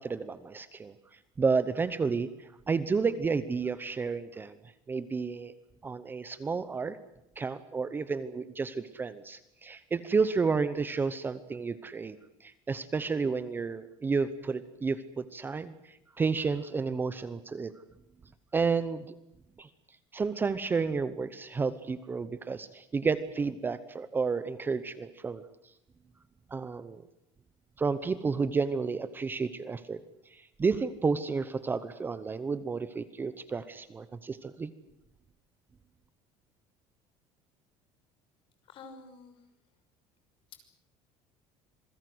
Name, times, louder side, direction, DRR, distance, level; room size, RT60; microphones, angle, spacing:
voice 1, 0.0-4.6 4.9-5.5 5.8-7.0 7.4-17.7 18.5-19.1 19.6-19.7 20.1-25.4 26.5-27.0 27.8-30.0 30.3-34.7, right 5 dB, 15° right, 13 dB, 0.9 m, -31 dB
voice 2, 38.6-39.5 40.5-40.7, left 4 dB, 45° left, 7 dB, 6.0 m, -49 dB
27.5 x 21.5 x 7.9 m, 0.84 s
cardioid pair, 165°, 12 cm